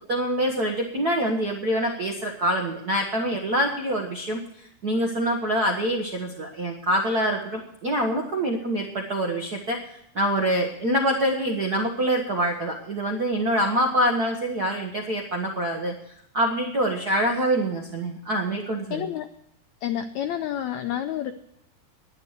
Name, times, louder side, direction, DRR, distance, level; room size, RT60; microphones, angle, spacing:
voice 1, 0.1-9.8 10.1-15.9 16.3-19.1, right 1 dB, 75° right, 1 dB, 0.9 m, -25 dB
voice 2, 18.9-19.3 19.8-21.3, left 10 dB, 85° left, 8 dB, 1.6 m, -29 dB
11.0 x 11.0 x 6.5 m, 0.73 s
omnidirectional pair, 4.0 m